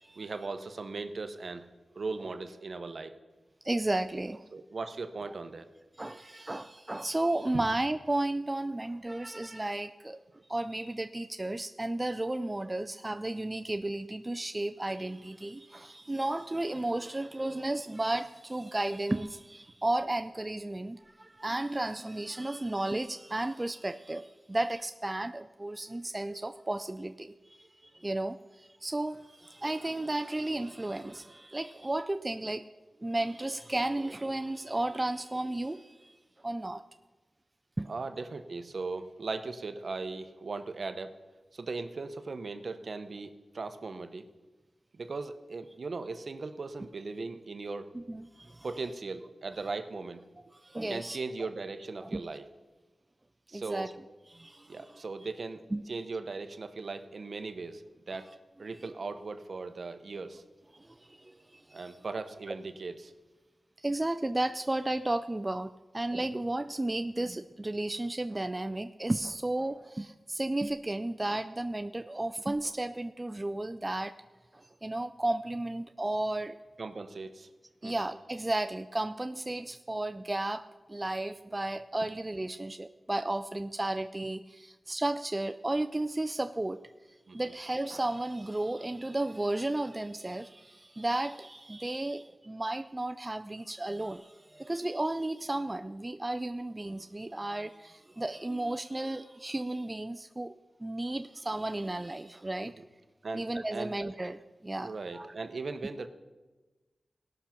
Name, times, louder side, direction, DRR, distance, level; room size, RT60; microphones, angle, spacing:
voice 1, 0.2-1.7 1.9-3.2 4.5-5.7 7.5-7.6 37.9-41.1 41.5-44.2 44.9-47.9 48.6-50.2 50.9-52.4 53.5-53.9 54.7-55.6 55.9-58.3 58.6-60.4 61.7-63.1 76.8-77.5 77.8-78.1 87.3-87.4 102.8-102.9 103.2-103.9 104.8-106.1, right 3 dB, 55° right, 9 dB, 0.8 m, -38 dB
voice 2, 3.6-4.5 6.0-10.2 10.5-32.6 33.0-36.1 36.4-36.8 37.8-37.9 47.9-48.7 50.5-51.5 52.0-52.2 53.5-53.9 54.3-55.0 55.7-55.8 60.7-62.0 62.5-62.6 63.8-74.1 74.5-76.6 77.8-86.8 87.3-100.5 100.8-102.7 103.3-105.3, right 2 dB, 20° right, 8 dB, 0.3 m, -33 dB
18.0 x 6.0 x 5.8 m, 1.2 s
wide cardioid pair, 105°, 0 cm